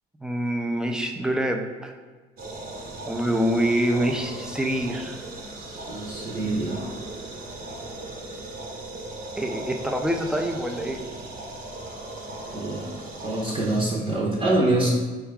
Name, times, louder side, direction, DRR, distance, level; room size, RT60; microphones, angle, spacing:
voice 1, 0.2-1.9 3.1-5.2 9.4-11.0, right 1 dB, 5° right, 3 dB, 0.4 m, -26 dB
sound 1, 2.4-13.8, right 2 dB, 60° right, 0.9 m, -37 dB
voice 2, 5.9-6.8 12.5-12.9 13.2-14.9, right 2 dB, 35° right, -5 dB, 0.8 m, -25 dB
4.4 x 2.3 x 3.5 m, 1.4 s
cardioid pair, 110°, 17 cm